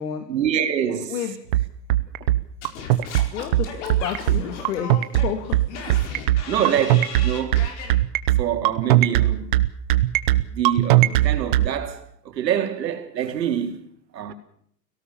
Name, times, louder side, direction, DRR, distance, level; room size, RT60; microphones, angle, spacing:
voice 1, 0.3-1.2 5.9-6.0 6.5-7.6 8.4-9.5 10.5-13.9 14.1-14.3, right 9 dB, 80° right, 3.8 m, -25 dB
sound 1, 1.5-11.7, right 15 dB, 30° right, 0.9 m, -18 dB
Singing / Scratching (performance technique), 2.6-7.9, left 5 dB, 45° left, 4.9 m, -36 dB
voice 2, 3.3-5.6, left 9 dB, 65° left, 2.7 m, -30 dB
23.5 x 17.5 x 7.1 m
supercardioid pair, 170°, 49 cm